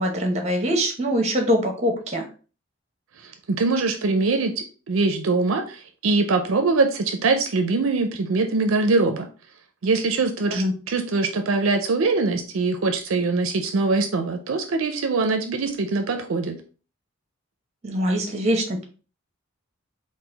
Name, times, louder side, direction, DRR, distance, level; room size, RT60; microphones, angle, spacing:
voice 1, 0.0-2.2 10.5-10.7 17.8-18.8, equal, 30° right, 4 dB, 0.8 m, -23 dB
voice 2, 3.2-9.3 9.8-16.6, right 3 dB, 70° right, 6 dB, 0.4 m, -23 dB
3.8 x 2.5 x 3.9 m, 0.37 s
head